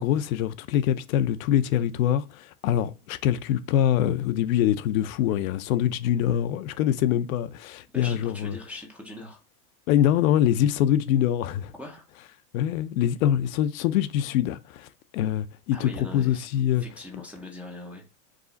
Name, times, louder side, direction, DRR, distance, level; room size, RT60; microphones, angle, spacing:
voice 1, 0.0-8.6 9.9-11.7 12.5-16.8, left 11 dB, 65° left, 0.6 m, -24 dB
voice 2, 7.9-9.4 11.7-12.1 15.7-16.5 16.8-18.1, left 2 dB, 5° right, 0.4 m, -41 dB
4.9 x 2.4 x 3.8 m
supercardioid pair, 125°, 46 cm